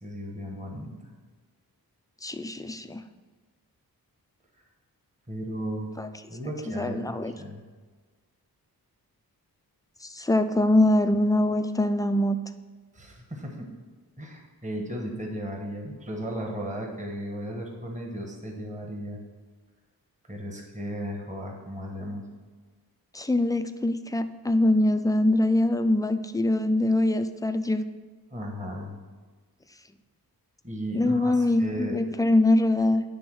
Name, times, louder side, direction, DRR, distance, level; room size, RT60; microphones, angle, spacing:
voice 1, 0.0-1.1 5.3-5.9 6.3-7.6 12.9-13.7 14.2-19.2 20.3-22.2 28.3-29.0 30.6-32.2, equal, 20° right, 1 dB, 1.1 m, -35 dB
voice 2, 2.2-3.0 6.0-6.1 6.7-7.3 10.0-12.4 23.1-27.9 30.9-33.0, left 1 dB, 10° left, 9 dB, 0.3 m, -23 dB
9.6 x 3.5 x 6.1 m, 1.4 s
wide cardioid pair, 105°, 37 cm